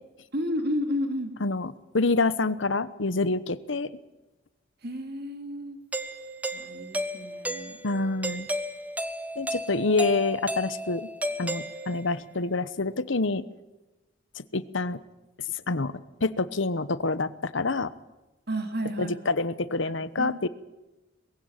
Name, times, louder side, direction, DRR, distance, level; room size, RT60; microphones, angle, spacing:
voice 1, 0.3-1.3 4.8-5.8 6.5-7.8 18.5-19.2 20.2-20.4, equal, 55° right, 7 dB, 2.7 m, -31 dB
voice 2, 1.4-3.9 7.8-8.5 9.4-11.1 11.4-13.4 14.4-15.0 15.7-17.9 19.0-20.5, left 3 dB, 70° left, 16 dB, 1.1 m, -27 dB
Doorbell, 5.9-12.2, right 1 dB, 10° right, 1.3 m, -34 dB
22.0 x 16.0 x 9.1 m, 1.1 s
head